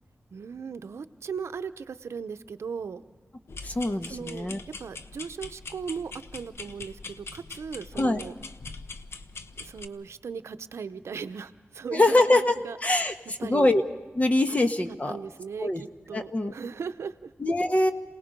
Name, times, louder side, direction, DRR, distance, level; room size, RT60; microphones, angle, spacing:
voice 1, 0.3-3.0 4.0-4.5 4.8-8.3 9.6-13.1 13.4-13.7 14.5-14.6 15.1-17.3, right 6 dB, 85° right, 10 dB, 0.7 m, -37 dB
sound 1, 3.5-9.9, left 4 dB, 70° left, 0.9 m, -42 dB
voice 2, 3.6-4.6 8.0-8.2 11.9-12.6 12.8-13.1 13.4-13.8 14.2-15.2 15.6-15.8 16.1-16.5 17.4-17.9, left 2 dB, 30° left, 6 dB, 1.3 m, -23 dB
27.5 x 18.5 x 5.1 m, 1.3 s
wide cardioid pair, 70°, 4 cm